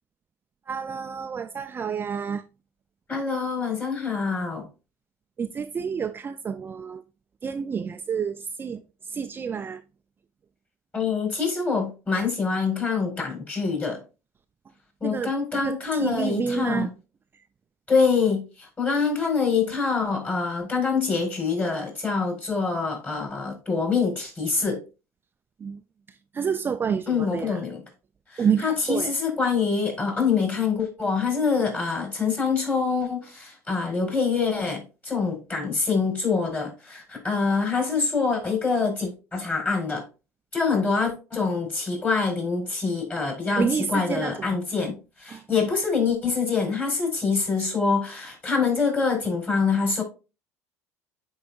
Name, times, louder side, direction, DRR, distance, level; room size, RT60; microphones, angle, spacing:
voice 1, 0.7-2.4 5.4-7.0 7.4-8.8 9.1-9.8 15.0-16.9 25.6-25.8 26.3-27.6 28.4-29.1 43.6-44.3 45.3-45.4, right 6 dB, 30° right, 0.4 m, -29 dB
voice 2, 3.1-4.7 10.9-14.0 15.0-16.9 17.9-24.8 27.1-27.8 28.3-40.0 40.5-50.0, left 5 dB, 25° left, 4.2 m, -25 dB
9.9 x 4.7 x 2.4 m
hypercardioid pair, 75°, 7 cm